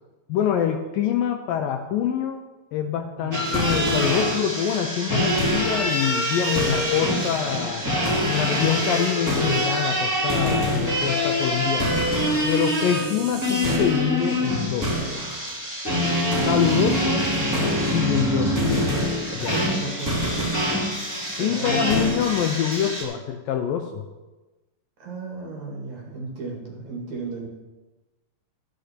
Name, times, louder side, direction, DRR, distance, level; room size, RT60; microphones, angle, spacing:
voice 1, 0.3-2.4 2.7-7.8 8.2-12.0 12.4-14.9 16.4-17.3 17.9-18.7 19.3-19.6 21.4-24.1, left 9 dB, 80° left, 5 dB, 2.2 m, -25 dB
sound 1, 3.3-23.0, equal, 5° right, 2.1 m, -24 dB
sound 2, 12.0-13.8, right 6 dB, 80° right, 1.4 m, -40 dB
voice 2, 19.4-20.2 21.4-22.1 25.0-27.5, right 3 dB, 50° right, -1 dB, 3.1 m, -35 dB
13.0 x 10.0 x 4.4 m, 1.1 s
omnidirectional pair, 4.5 m